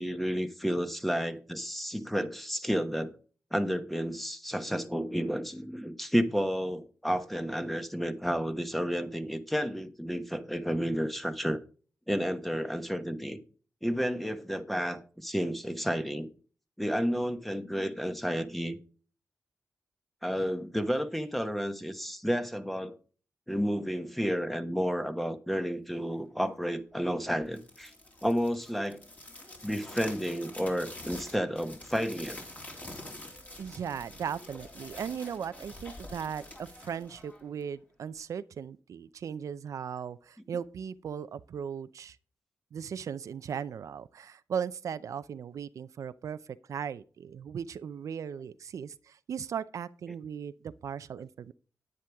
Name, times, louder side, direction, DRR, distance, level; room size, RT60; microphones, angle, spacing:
voice 1, 0.0-3.1 3.5-11.6 12.1-13.4 13.8-16.3 16.8-18.8 20.2-23.0 23.5-27.9 28.2-29.0 29.6-32.4, equal, ahead, 1.2 m, -31 dB
sound 1, 27.4-37.8, left 1 dB, 25° left, 3.3 m, -47 dB
voice 2, 33.6-42.2 42.7-46.4 46.7-51.5, right 7 dB, 75° right, 0.5 m, -37 dB
10.5 x 9.7 x 3.5 m
wide cardioid pair, 120°, 6 cm